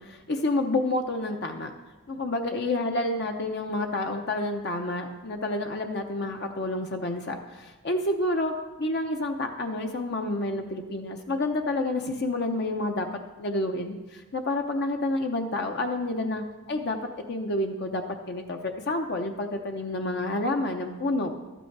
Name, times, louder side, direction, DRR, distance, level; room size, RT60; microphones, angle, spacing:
voice 1, 0.0-1.7 2.1-13.1 13.4-17.0 17.3-21.3, left 2 dB, 50° left, 4 dB, 0.7 m, -29 dB
12.5 x 9.0 x 4.7 m, 1.2 s
head